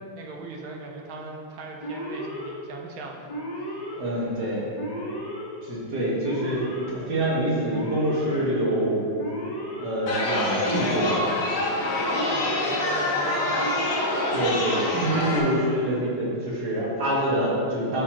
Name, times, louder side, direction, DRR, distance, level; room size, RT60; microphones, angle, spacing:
voice 1, 0.0-3.3 12.3-13.9, right 2 dB, 85° right, 1 dB, 1.6 m, -38 dB
Alarm, 1.8-2.5 3.3-3.9 4.7-5.4 6.2-6.9 7.7-8.4 9.2-9.8 10.6-11.3 12.1-12.8 13.6-14.3 15.1-15.7, equal, 25° left, 1.1 m, -34 dB
voice 2, 4.0-4.6 5.6-9.1 9.8-11.2 14.3-18.0, right 1 dB, 55° right, -6 dB, 2.1 m, -26 dB
Chatter, 10.1-15.4, left 1 dB, 60° left, 1.5 m, -26 dB
12.0 x 4.4 x 2.9 m, 2.5 s
omnidirectional pair, 2.2 m